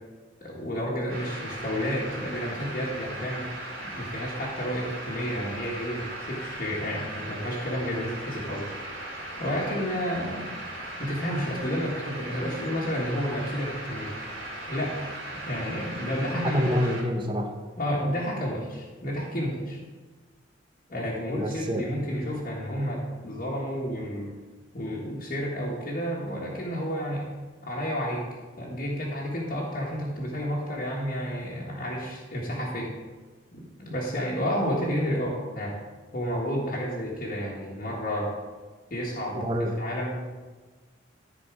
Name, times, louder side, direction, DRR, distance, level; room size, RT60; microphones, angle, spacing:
voice 1, 0.4-3.5 3.8-8.7 9.4-10.5 11.0-14.1 14.7-15.0 15.3-16.7 17.8-19.8 20.9-24.4 24.7-27.3 27.6-28.2 28.6-32.9 33.5-35.8 36.1-38.3 38.9-39.4 39.8-40.3, equal, 45° left, -6 dB, 1.5 m, -31 dB
sound 1, 1.1-17.0, right 1 dB, 55° right, 2.7 m, -38 dB
voice 2, 16.5-17.5 21.3-21.9 39.3-39.7, equal, 25° right, 4 dB, 0.9 m, -27 dB
13.5 x 4.6 x 4.9 m, 1.3 s
head